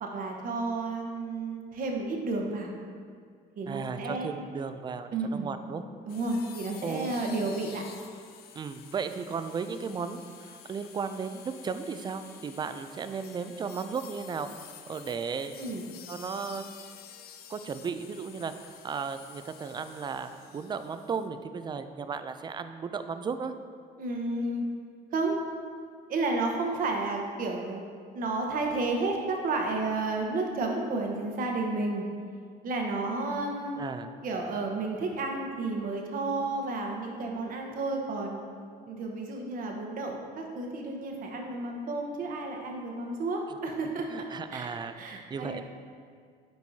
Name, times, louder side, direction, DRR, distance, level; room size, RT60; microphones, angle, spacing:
voice 1, 0.0-2.7 3.6-4.3 5.1-5.5 6.0-7.8 15.6-15.8 24.0-24.6 25.1-25.4 26.1-27.8 28.1-32.0 32.6-33.8 34.2-38.4 38.9-44.3 44.5-44.7 45.0-45.6, right 3 dB, 55° right, 1 dB, 1.0 m, -31 dB
voice 2, 3.7-5.8 6.8-7.1 8.5-15.6 16.1-16.7 17.5-23.5 33.8-34.1 43.5-43.6 44.1-45.6, right 5 dB, 25° right, 10 dB, 0.3 m, -35 dB
sound 1, 6.1-21.3, left 8 dB, 65° left, 0.5 m, -50 dB
9.7 x 4.6 x 2.7 m, 2.1 s
cardioid pair, 110°, 17 cm